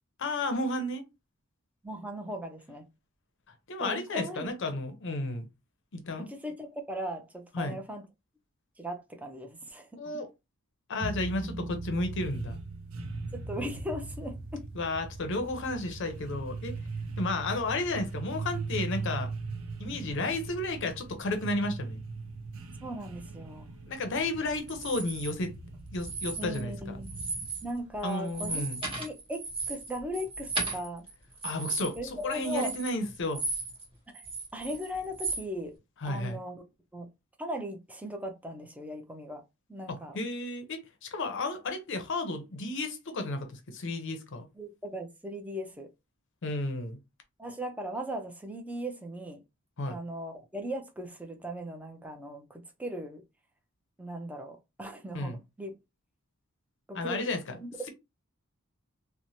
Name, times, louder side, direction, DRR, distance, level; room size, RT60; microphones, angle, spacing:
voice 1, 0.2-1.0 3.7-5.5 5.9-6.3 7.5-7.8 10.0-10.3 10.9-12.6 14.7-16.8 17.2-19.3 19.8-22.0 23.9-25.5 25.9-27.0 28.0-28.8 31.4-33.4 36.0-36.4 39.9-44.5 46.4-47.0 49.8-50.0 55.1-55.4 56.9-57.6, left 2 dB, 55° left, 0.6 m, -32 dB
voice 2, 1.8-2.9 3.8-4.5 6.2-8.0 8.8-9.9 13.3-14.7 22.8-23.7 26.4-28.6 28.9-31.0 32.0-32.7 34.1-34.2 34.5-35.7 36.1-36.6 36.9-37.1 37.4-39.4 39.7-40.2 44.6-45.9 47.4-49.4 49.9-53.2 54.0-55.7 56.9-57.3 57.6-57.9, equal, 5° right, 0.5 m, -38 dB
sound 1, 11.0-27.8, right 3 dB, 65° right, 0.5 m, -39 dB
sound 2, 24.7-25.3 25.9-26.7 27.0-27.7 28.0-33.8 34.1-35.4, right 3 dB, 25° right, 1.3 m, -36 dB
3.0 x 2.1 x 2.6 m
head